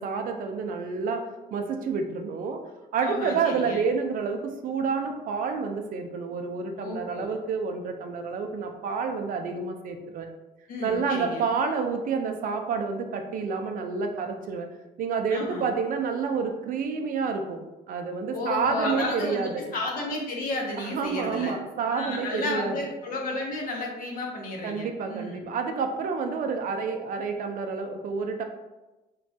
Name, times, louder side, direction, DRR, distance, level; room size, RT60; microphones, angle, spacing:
voice 1, 0.0-2.6 2.9-10.3 10.8-14.7 15.0-17.6 17.9-19.6 20.8-22.7 24.6-28.4, right 5 dB, 55° right, 5 dB, 0.4 m, -29 dB
voice 2, 3.0-3.8 6.8-7.3 10.7-11.5 15.3-15.7 18.3-21.5 21.9-25.4, left 2 dB, 55° left, 0 dB, 0.7 m, -32 dB
3.2 x 2.2 x 2.6 m, 1.1 s
cardioid pair, 110°, 17 cm